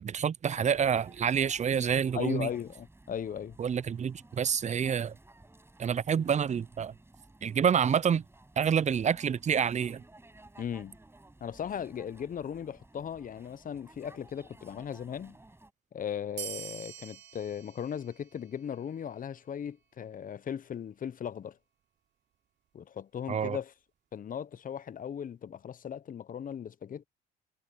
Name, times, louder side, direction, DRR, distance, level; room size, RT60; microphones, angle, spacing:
voice 1, 0.0-2.5 3.6-5.1 5.8-6.9 7.4-8.2 8.6-10.0 23.3-23.6, right 7 dB, 35° right, 0.8 m, -28 dB
sound 1, 0.7-15.7, right 2 dB, 10° right, 5.9 m, -56 dB
voice 2, 2.1-3.6 10.6-11.0 11.4-15.4 15.9-21.6 22.7-23.7 24.1-27.1, left 8 dB, 45° left, 1.1 m, -37 dB
sound 2, 16.4-19.4, right 10 dB, 60° right, 4.4 m, -45 dB
hypercardioid pair, 65°, 20 cm